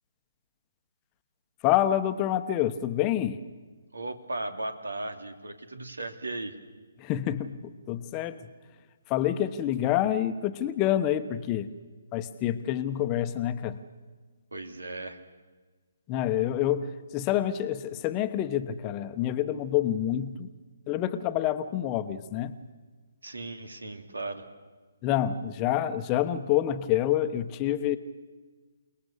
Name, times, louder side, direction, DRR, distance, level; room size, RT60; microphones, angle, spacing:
voice 1, 1.6-3.4 7.0-8.5 9.1-11.7 12.1-13.8 16.1-20.5 20.9-22.6 25.0-28.0, left 11 dB, 25° left, 10 dB, 1.1 m, -27 dB
voice 2, 3.9-6.5 14.5-15.2 23.2-24.5, right 2 dB, 85° right, 7 dB, 2.7 m, -36 dB
29.0 x 19.5 x 6.7 m, 1.4 s
figure-of-eight pair, 140°, 0 cm